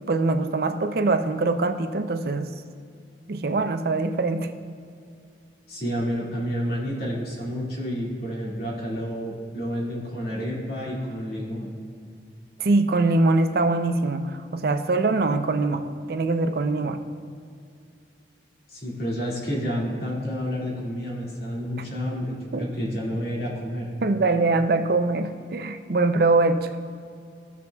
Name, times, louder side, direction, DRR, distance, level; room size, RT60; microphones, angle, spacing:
voice 1, 0.1-2.5 3.3-4.5 12.6-17.0 22.5-22.7 24.0-26.7, right 3 dB, 60° right, 8 dB, 0.5 m, -23 dB
voice 2, 5.7-11.7 18.7-23.9, equal, 60° left, -4 dB, 2.1 m, -30 dB
15.0 x 7.2 x 2.3 m, 2.4 s
head